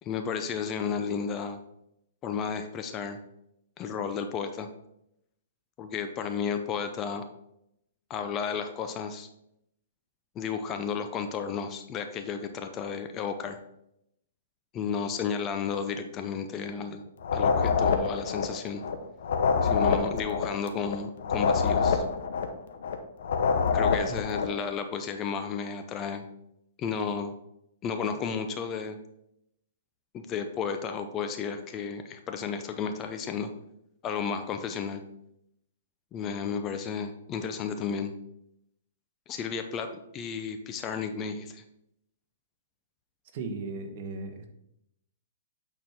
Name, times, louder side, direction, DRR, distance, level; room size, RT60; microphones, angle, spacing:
voice 1, 0.0-1.6 2.2-3.2 3.8-4.7 5.8-7.3 8.1-9.3 10.4-13.6 14.7-17.0 17.3-18.8 19.6-22.0 23.7-26.2 26.8-27.3 27.8-29.0 30.1-33.5 34.0-35.0 36.1-38.1 39.3-41.6, left 6 dB, 25° left, 7 dB, 0.6 m, -33 dB
sound 1, 17.2-19.0 19.2-23.0 23.2-24.6, left 5 dB, 65° left, 0.8 m, -26 dB
voice 2, 43.3-44.5, right 3 dB, 45° right, 5 dB, 1.2 m, -36 dB
8.6 x 4.5 x 3.6 m, 0.78 s
hypercardioid pair, 150°, 0 cm